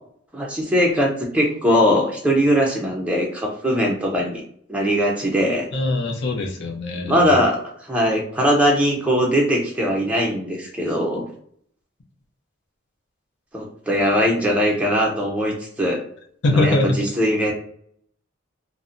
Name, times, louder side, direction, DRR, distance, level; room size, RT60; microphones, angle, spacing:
voice 1, 0.3-4.4 4.7-5.7 7.0-7.6 7.9-11.3 13.5-16.0 16.5-17.5, equal, 5° right, -1 dB, 0.4 m, -20 dB
voice 2, 5.7-7.4 16.4-16.9, left 2 dB, 60° left, 2 dB, 0.5 m, -22 dB
2.6 x 2.1 x 2.5 m, 0.64 s
head